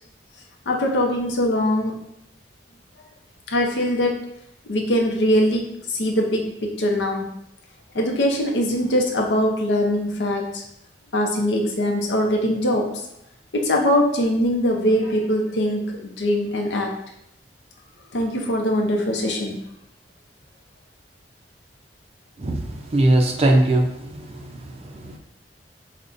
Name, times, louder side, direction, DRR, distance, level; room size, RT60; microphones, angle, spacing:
voice 1, 0.7-2.0 3.5-4.3 4.7-7.3 7.9-10.6 11.1-13.1 13.5-16.9 18.1-19.6, equal, 75° left, 1 dB, 0.6 m, -22 dB
voice 2, 22.4-25.2, right 1 dB, 35° right, 3 dB, 0.4 m, -21 dB
5.2 x 2.1 x 2.4 m, 0.78 s
head